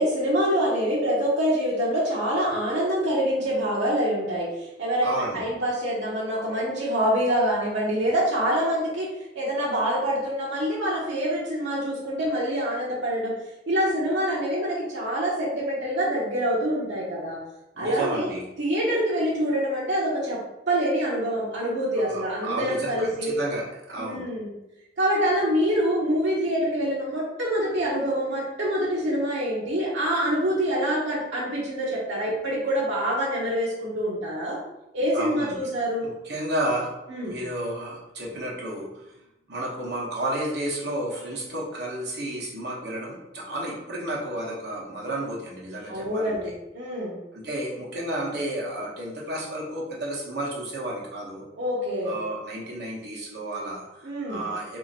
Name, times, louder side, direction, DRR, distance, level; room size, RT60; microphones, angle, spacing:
voice 1, 0.0-4.5 4.8-9.1 9.4-13.3 13.7-17.4 17.8-18.3 18.6-20.4 20.7-23.4 24.0-24.5 25.0-34.6 34.9-36.1 37.1-37.4 45.9-47.2 51.6-52.1 54.0-54.5, equal, 85° right, -6 dB, 0.7 m, -25 dB
voice 2, 5.0-5.5 17.8-18.4 21.9-24.2 35.1-35.6 36.0-36.9 37.2-39.1 39.5-46.4 47.3-51.4 52.0-54.8, right 1 dB, 65° right, -4 dB, 1.0 m, -32 dB
2.8 x 2.5 x 4.0 m, 0.93 s
head